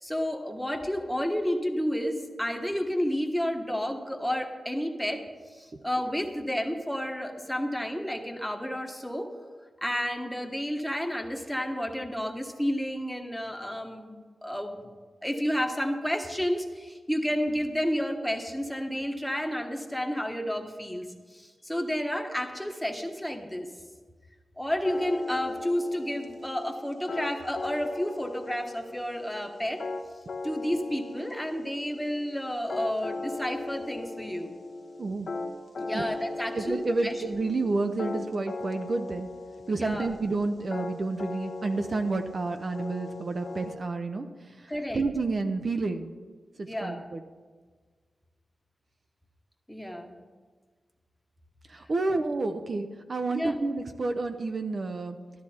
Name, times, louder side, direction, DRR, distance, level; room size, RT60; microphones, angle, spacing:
voice 1, 0.0-5.2 5.5-9.3 9.8-14.9 15.2-21.0 21.3-23.7 24.6-29.8 30.4-34.5 35.8-37.1 39.8-40.1 44.7-45.0 46.7-47.1 49.7-50.1 53.3-53.6, equal, 5° left, 4 dB, 1.1 m, -31 dB
sound 1, 24.8-43.7, left 3 dB, 55° left, 1.0 m, -38 dB
voice 2, 35.0-35.3 35.9-36.0 36.5-39.3 39.7-46.1 46.6-47.2 51.7-55.2, right 3 dB, 45° right, 6 dB, 0.6 m, -30 dB
12.5 x 12.5 x 4.3 m, 1.5 s
wide cardioid pair, 125°, 0 cm